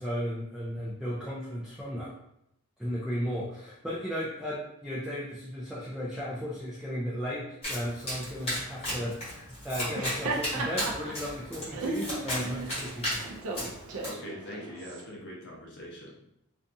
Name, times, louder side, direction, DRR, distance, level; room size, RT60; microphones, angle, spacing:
voice 1, 0.0-2.1 2.8-13.2, equal, ahead, -8 dB, 0.3 m, -35 dB
Domestic sounds home sounds, 7.6-14.1, equal, 25° left, 1.1 m, -35 dB
Laughter, 9.8-15.0, right 3 dB, 70° right, 0.4 m, -36 dB
voice 2, 14.0-16.1, equal, 55° left, -3 dB, 0.7 m, -43 dB
2.6 x 2.3 x 2.6 m, 0.79 s
head